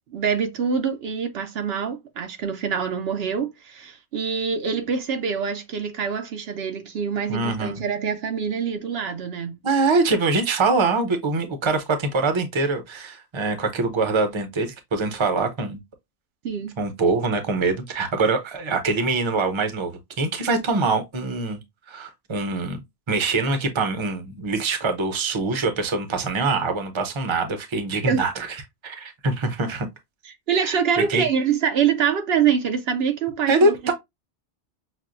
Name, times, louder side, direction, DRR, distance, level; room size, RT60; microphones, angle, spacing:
voice 1, 0.1-9.6 16.4-16.7 28.1-28.2 30.2-33.9, right 7 dB, 70° right, 0.8 m, -25 dB
voice 2, 7.3-7.8 9.6-15.8 16.8-22.8 23.1-28.5 28.8-29.9 30.6-30.8 31.1-31.2 33.5-33.9, right 3 dB, 30° right, 0.7 m, -24 dB
6.0 x 2.1 x 2.5 m
omnidirectional pair, 1.1 m